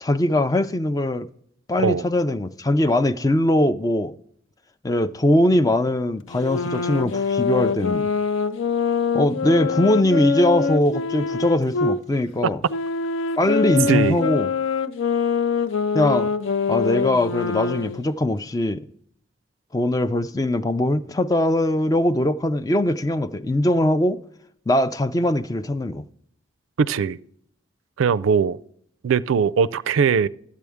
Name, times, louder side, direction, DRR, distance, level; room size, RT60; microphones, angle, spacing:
voice 1, 0.0-1.3 1.7-4.1 4.8-8.1 9.1-12.6 13.4-14.5 15.9-16.3 16.7-18.8 19.7-24.2 24.7-26.0, left 1 dB, 20° left, 0.3 m, -21 dB
sound 1, 6.3-12.0 12.7-18.1, left 5 dB, 75° left, 0.5 m, -24 dB
voice 2, 26.8-27.2 28.0-28.6 29.0-30.3, right 6 dB, 80° right, 0.4 m, -20 dB
12.5 x 8.4 x 3.5 m
head